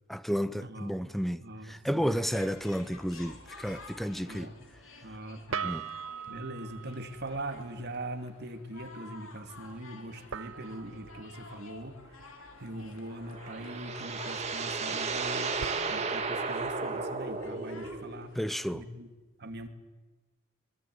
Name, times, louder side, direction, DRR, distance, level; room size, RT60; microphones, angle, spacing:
voice 1, 0.1-4.5 5.6-5.8 18.4-18.8, equal, ahead, 0.7 m, -32 dB
voice 2, 0.6-0.9 1.4-2.2 4.3-4.5 5.0-5.8 6.3-12.2 12.6-15.6 15.9-18.4 18.7-19.1 19.4-19.7, right 1 dB, 55° right, 2.4 m, -41 dB
sound 1, 1.0-1.2 5.5-7.9 10.3-12.8 15.6-18.7, right 7 dB, 85° right, 0.8 m, -43 dB
sound 2, 2.3-18.8, left 3 dB, 80° left, 3.6 m, -52 dB
sound 3, 13.1-18.3, right 4 dB, 35° right, 2.4 m, -34 dB
24.0 x 20.5 x 9.4 m
head